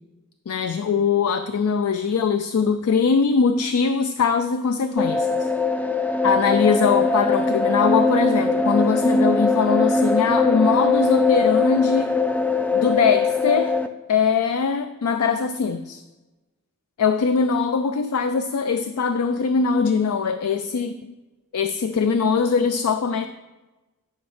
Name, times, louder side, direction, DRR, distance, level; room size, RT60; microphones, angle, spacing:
voice 1, 0.5-5.5 6.2-12.2 12.7-13.8 14.1-16.0 17.0-21.1 21.5-23.3, left 5 dB, 80° left, 10 dB, 0.4 m, -22 dB
sound 1, 5.0-13.9, left 3 dB, 5° left, 0.3 m, -21 dB
9.7 x 5.3 x 4.9 m, 1.1 s
head